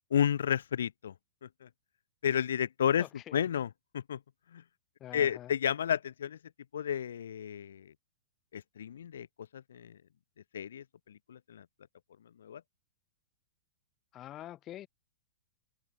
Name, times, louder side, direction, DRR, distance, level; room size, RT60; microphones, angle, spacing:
voice 1, 0.1-1.1 1.6-1.7 2.2-3.1 3.3-3.7 3.9-4.2 4.5-4.6 5.1-6.4 6.7-7.9 8.5-9.3 9.5-10.0 10.5-11.6 12.4-12.6, left 9 dB, 80° left, 0.5 m, -31 dB
voice 2, 3.0-3.4 5.0-5.5 14.1-14.9, left 13 dB, 15° left, 2.0 m, -45 dB
open air
hypercardioid pair, 175°, 0 cm